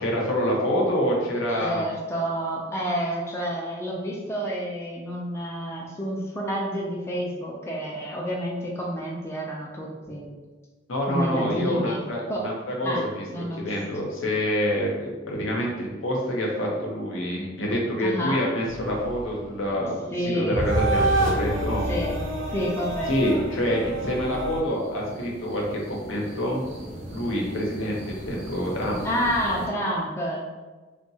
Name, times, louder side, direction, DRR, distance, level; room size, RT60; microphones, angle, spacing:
voice 1, 0.0-1.8 10.9-13.2 13.5-21.8 23.1-26.7 27.1-29.0, equal, 75° left, -2 dB, 0.7 m, -27 dB
voice 2, 1.6-10.4 11.1-12.0 12.3-12.5 12.8-13.6 18.0-18.4 20.1-20.7 21.9-22.2 22.5-23.4 29.0-30.5, equal, 15° left, -3 dB, 0.3 m, -29 dB
sound 1, 18.7-24.6, right 1 dB, 80° right, 0.6 m, -28 dB
sound 2, 24.6-29.7, right 1 dB, 35° right, 0.6 m, -40 dB
2.7 x 2.2 x 2.7 m, 1.3 s
head